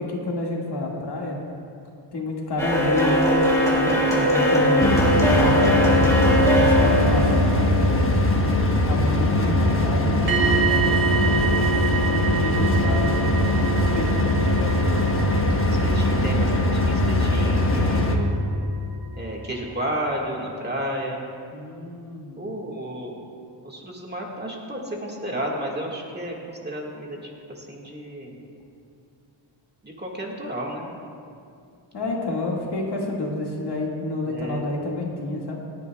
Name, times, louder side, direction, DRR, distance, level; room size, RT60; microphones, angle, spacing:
voice 1, 0.0-1.4 2.1-3.3 3.7-8.2 8.9-11.7 12.0-15.1 21.5-22.4 31.9-35.6, left 2 dB, 55° left, -2 dB, 2.0 m, -29 dB
sound 1, 2.6-8.3, equal, 5° left, 3.0 m, -20 dB
voice 2, 3.7-4.3 15.7-18.4 19.1-21.3 22.3-23.1 23.6-28.4 29.8-30.9 32.0-32.1 34.2-34.7, right 1 dB, 20° right, -2 dB, 1.8 m, -32 dB
sound 2, 4.8-18.1, left 1 dB, 25° left, 1.1 m, -21 dB
sound 3, 10.3-18.2 18.4-18.7, right 7 dB, 70° right, 2.4 m, -28 dB
28.5 x 9.7 x 2.3 m, 2.4 s
wide cardioid pair, 135°, 47 cm